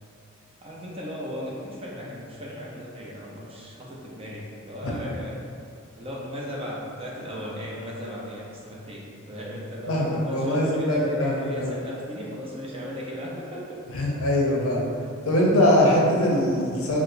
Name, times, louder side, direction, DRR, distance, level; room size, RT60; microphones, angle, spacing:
voice 1, 0.6-5.4 6.0-14.1, left 1 dB, 25° right, -4 dB, 0.5 m, -36 dB
voice 2, 9.9-11.7 13.9-14.8 15.3-17.0, left 1 dB, 75° left, -3 dB, 0.6 m, -22 dB
4.7 x 2.0 x 2.5 m, 2.3 s
head